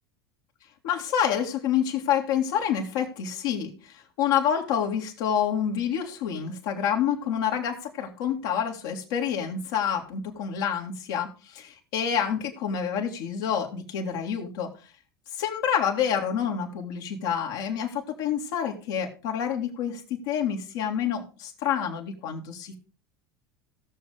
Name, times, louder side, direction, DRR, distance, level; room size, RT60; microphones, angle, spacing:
voice 1, 0.8-14.7 15.3-22.8, left 8 dB, 65° left, 1 dB, 2.5 m, -28 dB
18.0 x 6.6 x 3.4 m, 0.35 s
hypercardioid pair, 80°, 12 cm